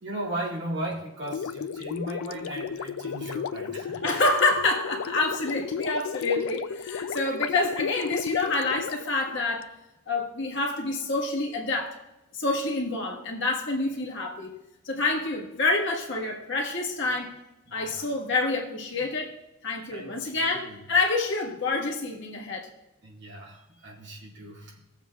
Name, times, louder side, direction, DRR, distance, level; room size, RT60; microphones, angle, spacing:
voice 1, 0.0-4.1 7.0-7.2 17.7-18.1 19.9-20.8 23.0-24.8, right 1 dB, 55° right, -4 dB, 2.3 m, -37 dB
Gurgling, 1.2-9.6, left 6 dB, 80° left, 0.4 m, -34 dB
voice 2, 4.0-9.7 10.1-12.0 12.3-14.5 14.8-17.3 17.7-19.3 19.6-22.7, left 3 dB, 55° left, -1 dB, 1.5 m, -27 dB
17.5 x 7.3 x 2.3 m, 0.98 s
head